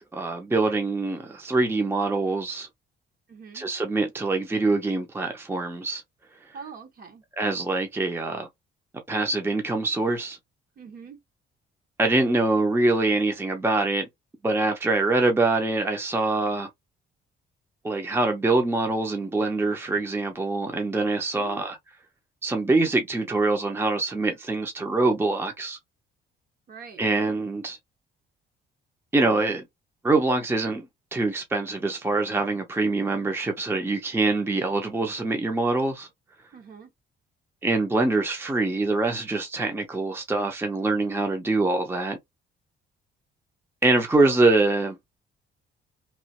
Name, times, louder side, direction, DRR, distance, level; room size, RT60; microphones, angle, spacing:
voice 1, 0.1-2.7 3.5-6.0 6.5-6.6 7.4-8.5 9.1-10.4 12.0-14.1 14.4-16.7 17.8-21.8 22.4-25.8 27.0-27.8 29.1-29.6 30.0-36.1 37.6-42.2 43.8-45.0, right 2 dB, 10° right, 0.6 m, -24 dB
voice 2, 3.3-3.7 6.5-7.2 10.8-11.2 21.3-21.7 26.7-27.0 36.5-36.9, right 6 dB, 50° right, 1.3 m, -43 dB
3.0 x 2.8 x 2.9 m
cardioid pair, 130°, 20 cm